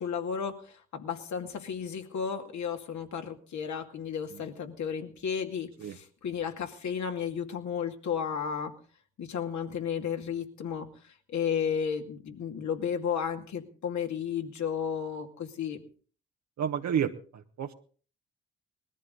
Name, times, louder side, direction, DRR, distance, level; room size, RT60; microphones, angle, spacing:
voice 1, 0.0-8.7 9.2-10.9 11.3-15.8, left 7 dB, 65° left, 5 dB, 2.4 m, -33 dB
voice 2, 16.6-17.7, right 8 dB, 65° right, 4 dB, 1.2 m, -31 dB
20.0 x 13.5 x 3.9 m, 0.42 s
supercardioid pair, 55°, 31 cm